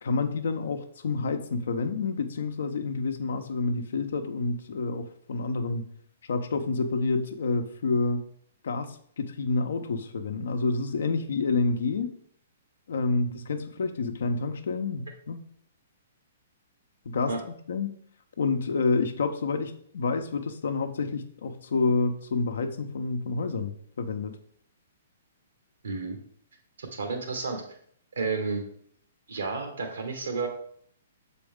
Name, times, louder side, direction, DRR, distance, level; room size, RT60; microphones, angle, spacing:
voice 1, 0.0-5.8 6.3-8.2 8.6-12.1 12.9-15.4 17.0-17.9 18.4-24.4, left 4 dB, 65° left, 7 dB, 0.7 m, -28 dB
voice 2, 25.8-26.2 26.8-27.6 28.1-28.6 29.3-30.5, right 4 dB, 70° right, 3 dB, 1.5 m, -31 dB
6.9 x 4.2 x 3.6 m, 0.63 s
figure-of-eight pair, 120°, 0 cm